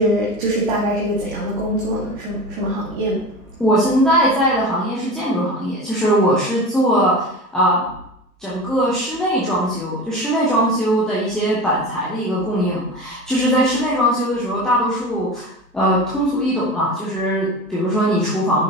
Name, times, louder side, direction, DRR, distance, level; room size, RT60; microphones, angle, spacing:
voice 1, 0.0-3.2, equal, 30° right, -5 dB, 1.8 m, -22 dB
voice 2, 3.6-7.3 7.5-7.8 8.4-15.5 15.7-18.6, equal, ahead, -10 dB, 0.8 m, -19 dB
10.5 x 5.7 x 2.9 m, 0.73 s
figure-of-eight pair, 125°, 47 cm